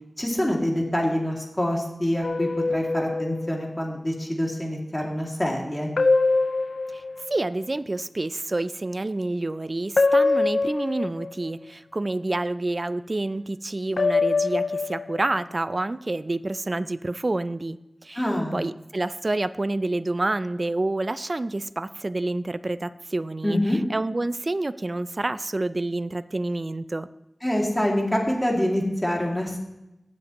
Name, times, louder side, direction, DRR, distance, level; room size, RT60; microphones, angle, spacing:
voice 1, 0.2-5.9 18.2-18.6 23.4-23.8 27.4-29.6, left 1 dB, 20° left, -1 dB, 2.3 m, -25 dB
sound 1, 2.2-3.5 6.0-7.5 10.0-11.5 14.0-15.4, left 3 dB, 70° left, 0.4 m, -23 dB
voice 2, 7.3-17.8 18.0-18.2 18.5-27.1, right 2 dB, 40° right, 14 dB, 0.4 m, -28 dB
17.0 x 7.4 x 3.0 m, 0.92 s
wide cardioid pair, 60°, 0 cm